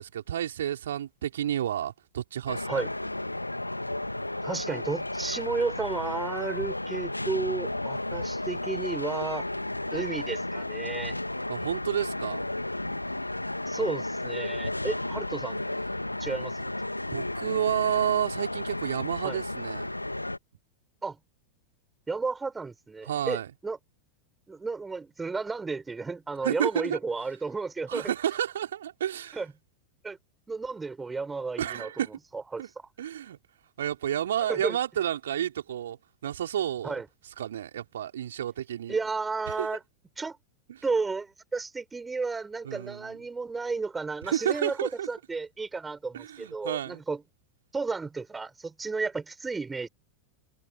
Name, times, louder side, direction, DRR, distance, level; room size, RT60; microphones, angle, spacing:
voice 1, 0.0-2.8 11.5-12.5 17.1-19.9 23.0-23.5 26.4-27.0 27.9-29.4 31.6-32.1 32.6-32.7 33.0-33.4 33.8-37.0 37.4-39.0 39.5-39.7 40.7-40.8 42.6-43.2 44.2-45.1 46.1-47.0, right 10 dB, 60° right, 4.8 m, -31 dB
sound 1, 2.5-20.4, left 1 dB, 85° left, 2.1 m, -33 dB
voice 2, 4.4-9.5 9.9-11.2 13.7-15.6 16.2-16.7 19.2-19.4 21.0-21.2 22.1-23.8 24.5-28.1 29.3-29.5 30.0-30.2 30.5-31.9 32.3-32.6 34.5-34.8 36.8-37.0 38.9-39.8 40.2-40.4 40.8-47.2 47.7-49.9, right 4 dB, 10° right, 6.3 m, -32 dB
figure-of-eight pair, 90°, 0 cm